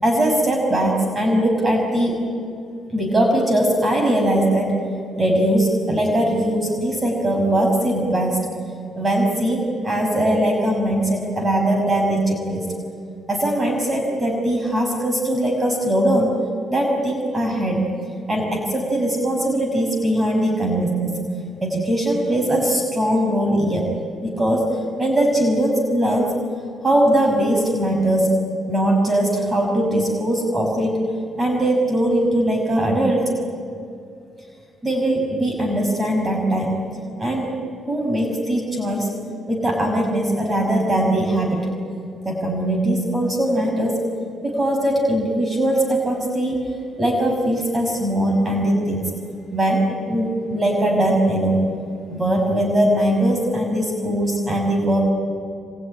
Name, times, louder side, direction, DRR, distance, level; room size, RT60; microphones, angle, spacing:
voice 1, 0.0-2.2 2.9-4.8 5.2-8.5 9.0-12.7 13.3-16.3 16.7-18.0 18.3-21.2 21.6-24.0 24.2-26.3 26.8-31.0 31.4-33.3 34.8-36.9 37.2-37.5 37.9-39.1 39.5-41.7 42.2-44.0 44.4-46.6 47.0-49.2 49.5-51.7 52.1-55.1, right 1 dB, 25° right, 1 dB, 6.1 m, -20 dB
26.5 x 22.5 x 9.9 m, 2.5 s
cardioid pair, 90°, 0 cm